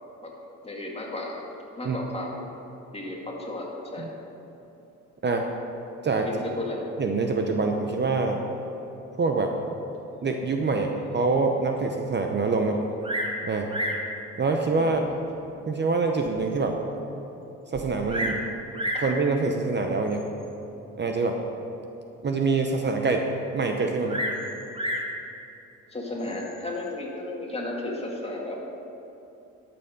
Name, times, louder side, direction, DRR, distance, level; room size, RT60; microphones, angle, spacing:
voice 1, 0.6-1.4 1.8-2.4 2.9-4.1 6.2-6.8 14.8-15.2 25.9-28.6, left 2 dB, 20° left, -2 dB, 2.3 m, -34 dB
voice 2, 7.0-8.4 9.2-9.5 10.2-12.8 13.5-13.7 14.4-15.0 15.7-16.8 17.7-18.4 19.0-20.2 21.0-21.4 22.2-23.2 23.5-24.2, right 4 dB, 35° right, 3 dB, 0.8 m, -25 dB
Bird vocalization bird call bird song, 13.0-13.4 13.7-14.1 14.9-15.0 15.7-15.8 16.3-16.4 16.6-16.7 17.7-18.4 18.7-19.1 20.1-20.4 24.1-25.1 26.2-26.6, equal, 20° right, 1.5 m, -30 dB
12.0 x 7.1 x 5.3 m, 3.0 s
cardioid pair, 90°, 30 cm